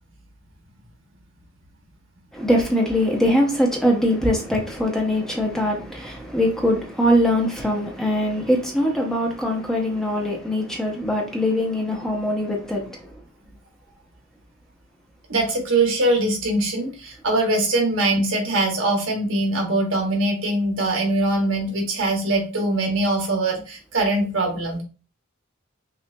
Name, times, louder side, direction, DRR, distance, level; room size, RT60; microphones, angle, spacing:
voice 1, 2.3-13.0, equal, 5° left, 0.7 m, -22 dB
voice 2, 15.3-24.8, right 2 dB, 65° right, 1.3 m, -22 dB
5.7 x 2.5 x 2.2 m
head